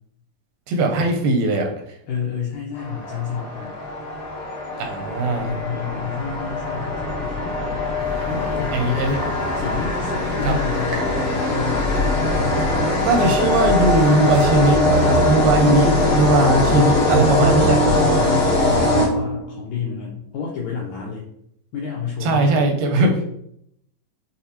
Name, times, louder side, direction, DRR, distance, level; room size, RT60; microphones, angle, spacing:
voice 1, 0.7-1.7 4.8-5.5 8.7-9.2 10.4-10.6 13.0-17.8 22.2-23.4, right 2 dB, 85° right, 3 dB, 2.4 m, -19 dB
voice 2, 2.1-3.8 5.5-7.9 8.3-11.9 17.9-21.3 21.7-22.8, left 6 dB, 80° left, -3 dB, 1.7 m, -30 dB
sound 1, 2.8-19.6, left 1 dB, 65° left, 1.6 m, -21 dB
sound 2, 8.0-14.6, right 2 dB, 65° right, 1.4 m, -39 dB
6.7 x 2.3 x 2.7 m, 0.72 s
omnidirectional pair, 4.0 m